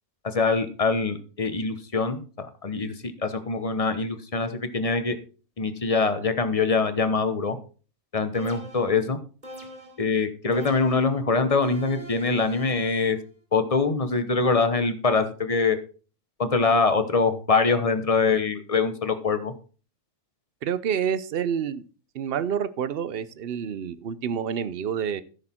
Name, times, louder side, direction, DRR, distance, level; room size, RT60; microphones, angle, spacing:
voice 1, 0.2-5.2 5.6-7.6 8.1-9.2 10.0-13.2 13.5-15.8 16.4-19.5, left 4 dB, 30° left, 10 dB, 1.0 m, -24 dB
sound 1, 8.3-9.0 9.4-10.1 10.5-11.2 11.6-13.2, equal, 35° right, 2.5 m, -43 dB
voice 2, 20.6-21.9 22.1-25.2, right 8 dB, 55° right, 15 dB, 0.8 m, -28 dB
14.5 x 6.5 x 4.4 m, 0.38 s
omnidirectional pair, 1.4 m